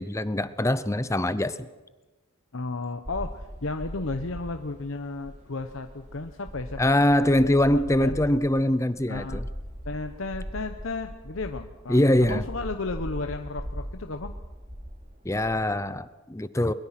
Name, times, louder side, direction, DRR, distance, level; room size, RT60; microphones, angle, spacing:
voice 1, 0.0-1.7 6.8-9.4 11.9-12.4 15.2-16.7, left 1 dB, 15° left, 14 dB, 0.6 m, -23 dB
voice 2, 2.5-8.2 9.1-9.4 9.8-14.3, left 3 dB, 70° left, 6 dB, 1.0 m, -34 dB
sound 1, 3.0-16.0, equal, 35° right, 2.9 m, -40 dB
22.5 x 22.0 x 5.9 m, 1.2 s
head